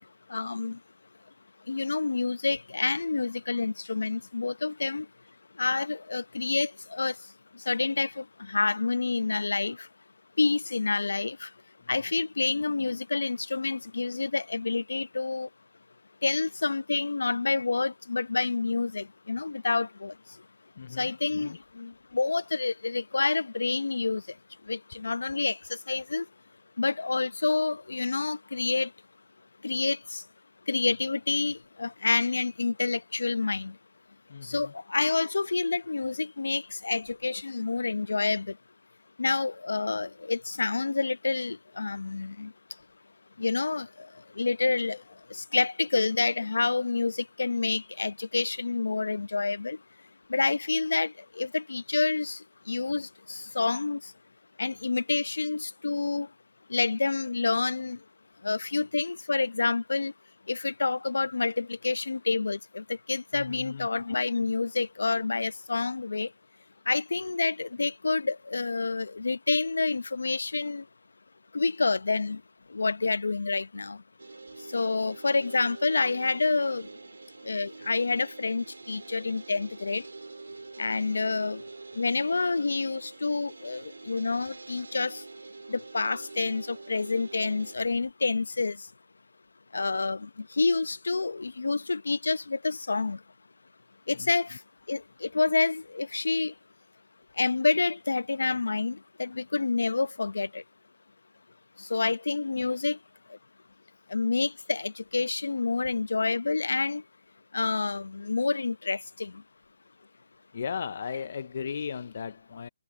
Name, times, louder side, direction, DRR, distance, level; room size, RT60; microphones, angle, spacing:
voice 1, 0.3-0.8 1.7-5.1 5.6-7.1 7.7-9.9 10.4-11.5 11.9-15.5 16.2-20.1 21.0-24.2 24.7-26.3 26.8-28.9 29.6-30.2 30.7-33.7 34.4-38.6 39.2-42.5 43.4-44.1 44.4-45.0 45.3-49.8 50.3-54.0 54.6-56.3 56.7-58.0 58.4-60.1 60.5-66.3 66.9-70.8 71.5-72.4 72.7-74.0 74.7-76.9 77.4-80.1 80.8-81.6 81.9-85.2 85.7-88.8 89.7-93.2 94.1-94.6 94.9-96.5 97.4-100.6 101.8-103.0 104.1-107.0 107.5-109.3, left 3 dB, 80° left, 0.8 m, -28 dB
voice 2, 20.8-21.1 21.4-21.6 34.3-34.7 63.3-63.9 94.2-94.3 110.5-112.7, left 6 dB, 50° left, 0.4 m, -36 dB
sound 1, 74.2-87.8, right 3 dB, 85° right, 3.2 m, -46 dB
hypercardioid pair, 155°, 0 cm